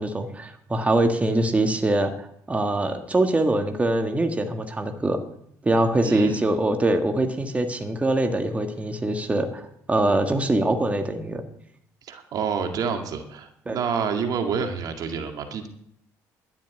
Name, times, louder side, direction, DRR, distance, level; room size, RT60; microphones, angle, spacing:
voice 1, 0.0-5.2 5.6-11.4 13.7-13.8, right 2 dB, 20° right, 5 dB, 1.8 m, -23 dB
voice 2, 6.0-6.4 12.0-15.7, right 6 dB, 60° right, 5 dB, 2.1 m, -28 dB
12.0 x 7.2 x 9.5 m, 0.70 s
supercardioid pair, 80°, 7 cm